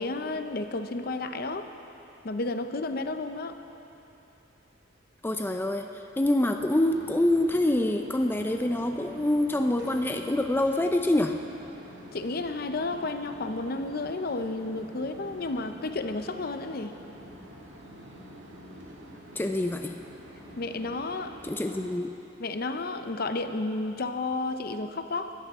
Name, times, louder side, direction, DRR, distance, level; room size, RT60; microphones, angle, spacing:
voice 1, 0.0-1.7 2.2-3.6 12.1-17.0 20.6-21.3 22.4-25.3, left 2 dB, 55° left, 8 dB, 0.7 m, -32 dB
voice 2, 5.2-11.4 19.4-20.0 21.4-22.1, left 1 dB, 10° left, 5 dB, 0.4 m, -26 dB
sound 1, 6.5-21.9, equal, 70° right, 2.5 m, -46 dB
20.0 x 14.0 x 3.6 m, 2.9 s
head